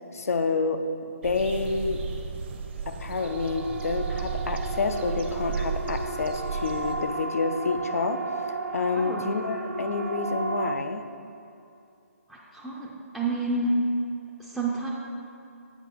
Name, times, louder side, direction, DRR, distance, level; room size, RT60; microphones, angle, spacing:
voice 1, 0.1-0.8 1.2-2.0 2.9-8.2 8.5-11.0, left 4 dB, 70° left, 7 dB, 0.5 m, -28 dB
sound 1, 1.2-6.9, right 5 dB, 45° right, 0.6 m, -34 dB
Siren, 3.2-10.8, right 3 dB, 80° right, 0.7 m, -34 dB
voice 2, 8.9-9.3 12.3-13.7 14.4-14.9, right 2 dB, ahead, -7 dB, 0.4 m, -30 dB
8.1 x 4.6 x 4.1 m, 2.6 s
figure-of-eight pair, 150°, 8 cm